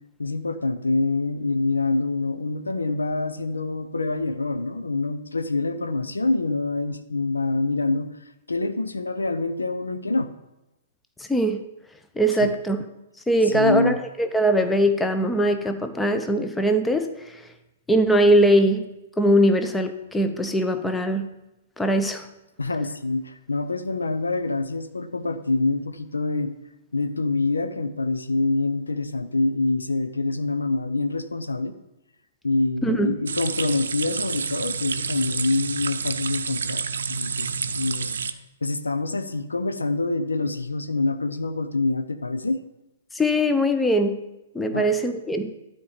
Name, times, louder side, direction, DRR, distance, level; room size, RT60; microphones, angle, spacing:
voice 1, 0.2-8.1 8.5-10.3 12.4-12.5 13.5-14.0 22.6-26.5 26.9-31.7 32.4-36.8 37.1-38.1 38.6-42.6 44.7-45.0, left 3 dB, 80° left, 10 dB, 0.7 m, -26 dB
voice 2, 11.2-11.6 12.2-12.8 13.3-17.4 17.9-18.9 19.2-21.3 21.8-22.3 32.8-33.1 43.1-44.2 44.5-45.5, equal, 5° left, 8 dB, 0.7 m, -21 dB
sound 1, 33.3-38.3, right 6 dB, 65° right, 0.6 m, -29 dB
12.0 x 4.5 x 6.8 m, 0.95 s
figure-of-eight pair, 115°, 0 cm